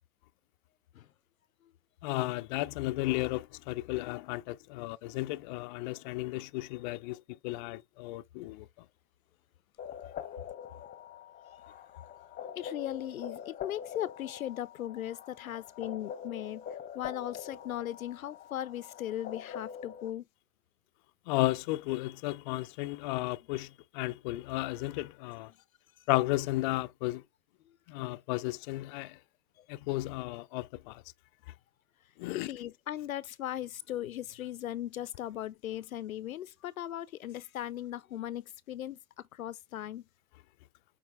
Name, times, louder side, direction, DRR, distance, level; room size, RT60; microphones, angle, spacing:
voice 1, 2.0-8.7 21.3-25.5 26.1-27.2 27.9-29.2 29.7-31.0 32.2-32.5, left 19 dB, 35° left, 0.5 m, -34 dB
sound 1, 9.8-20.1, left 8 dB, 20° left, 0.9 m, -44 dB
voice 2, 12.6-16.6 16.9-20.2 27.7-27.8 29.6-29.7 32.5-39.0 39.3-40.0, left 12 dB, 75° left, 0.6 m, -38 dB
7.3 x 4.3 x 3.3 m
figure-of-eight pair, 100°, 42 cm